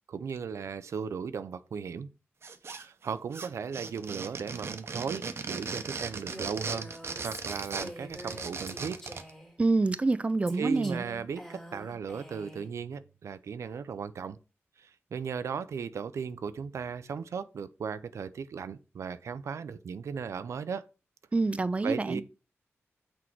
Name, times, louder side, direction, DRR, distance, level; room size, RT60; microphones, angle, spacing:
voice 1, 0.1-2.1 2.6-6.9 7.2-9.0 10.6-14.4 14.8-20.9 21.8-22.2, right 6 dB, 90° right, 0.5 m, -36 dB
sound 1, 2.4-3.1 3.3-9.3, right 4 dB, 60° right, 0.8 m, -38 dB
Female speech woman speaking, 6.3-9.6 10.5-12.7, equal, 10° left, 2.1 m, -45 dB
voice 2, 9.6-11.0 21.3-22.2, right 3 dB, 25° right, 0.4 m, -27 dB
6.2 x 4.6 x 4.5 m
wide cardioid pair, 110°, 5 cm